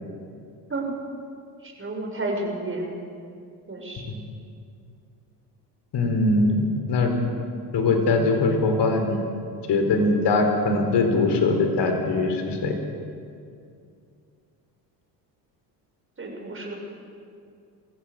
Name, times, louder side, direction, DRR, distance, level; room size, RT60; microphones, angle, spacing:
voice 1, 1.6-3.0 3.7-4.0 16.2-16.7, right 2 dB, 25° right, 0 dB, 6.0 m, -31 dB
voice 2, 5.9-7.2 7.7-9.2 9.7-12.7, left 3 dB, 55° left, 5 dB, 4.1 m, -21 dB
22.5 x 15.0 x 7.8 m, 2.4 s
hypercardioid pair, 65°, 49 cm